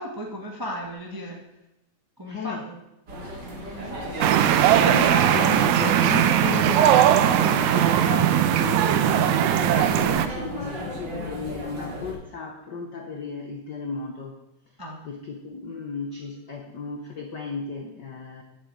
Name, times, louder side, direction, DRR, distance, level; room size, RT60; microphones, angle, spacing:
voice 1, 0.0-1.4 2.2-2.8 3.7-4.0 14.8-15.0, equal, 20° right, 0 dB, 0.5 m, -35 dB
voice 2, 2.2-2.7 4.8-14.4 15.0-18.4, left 5 dB, 70° left, 4 dB, 1.0 m, -34 dB
sound 1, 3.1-12.1, equal, 40° right, 3.0 m, -34 dB
sound 2, 4.2-10.3, right 11 dB, 85° right, 2.1 m, -19 dB
8.7 x 7.5 x 8.5 m, 0.92 s
omnidirectional pair, 3.3 m